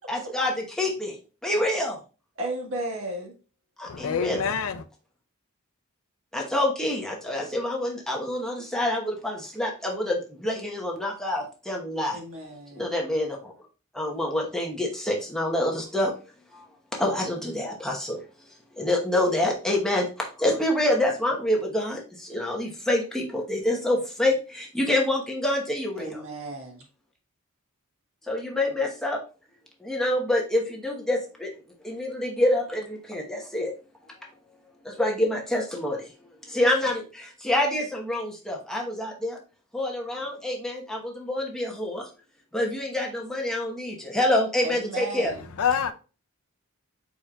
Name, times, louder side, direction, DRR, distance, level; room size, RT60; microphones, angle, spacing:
voice 1, 0.1-1.1 1.4-2.0 3.8-4.4 6.3-12.2 12.7-13.5 13.9-16.1 16.5-16.6 17.0-18.2 18.8-26.2 28.2-29.2 29.8-31.5 31.8-33.7 34.8-36.1 36.4-39.4 39.7-42.1 42.5-45.3, left 1 dB, ahead, 1.0 m, -27 dB
voice 2, 2.4-3.3 12.1-12.9 26.0-26.8 44.6-45.5, right 2 dB, 70° right, 1.6 m, -34 dB
voice 3, 3.9-4.8 45.6-45.9, left 7 dB, 75° left, 0.5 m, -26 dB
4.9 x 4.4 x 2.3 m
head